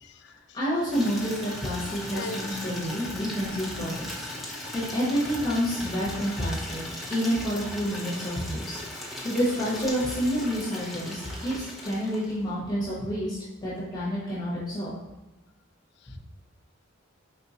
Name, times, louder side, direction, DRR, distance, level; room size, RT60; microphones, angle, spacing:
voice 1, 0.0-0.6 2.1-2.6 7.9-8.1 16.0-16.2, left 2 dB, 55° left, 7 dB, 0.3 m, -41 dB
voice 2, 0.5-4.2 4.7-6.8 7.1-14.9 16.1-16.2, equal, 20° left, -8 dB, 0.9 m, -29 dB
Water tap faucet / Liquid, 0.9-12.5, left 1 dB, ahead, 0.5 m, -38 dB
4.4 x 3.1 x 2.7 m, 1.0 s
head